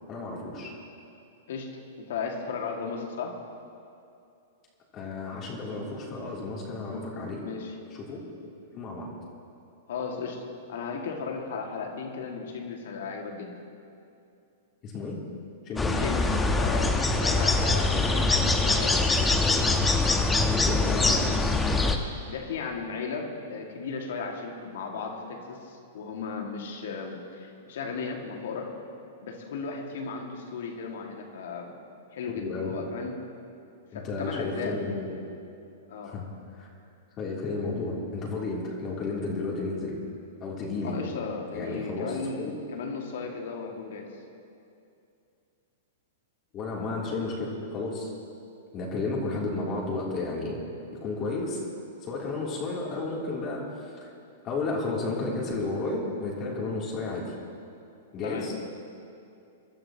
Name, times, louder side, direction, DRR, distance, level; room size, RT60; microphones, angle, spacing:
voice 1, 0.1-0.7 4.9-7.4 7.9-8.2 8.7-9.1 14.8-15.2 15.6-16.0 17.6-18.0 20.5-21.2 32.3-32.7 33.9-35.2 36.0-36.2 36.5-36.7 37.2-40.0 40.4-41.0 41.5-42.5 46.5-48.1 48.7-50.6 50.9-51.6 52.0-54.1 54.4-57.3 58.1-58.5, left 3 dB, 35° left, -4 dB, 3.1 m, -32 dB
voice 2, 1.5-3.4 6.9-7.8 9.9-13.6 15.9-19.1 22.3-28.7 29.2-31.7 32.1-33.2 33.9-34.8 35.9-36.2 40.8-44.1 58.2-58.5, left 5 dB, 65° left, 1 dB, 2.1 m, -35 dB
sound 1, 15.8-22.0, left 3 dB, 10° left, 1.1 m, -23 dB
24.0 x 12.5 x 3.0 m, 2.6 s
hypercardioid pair, 105°, 0 cm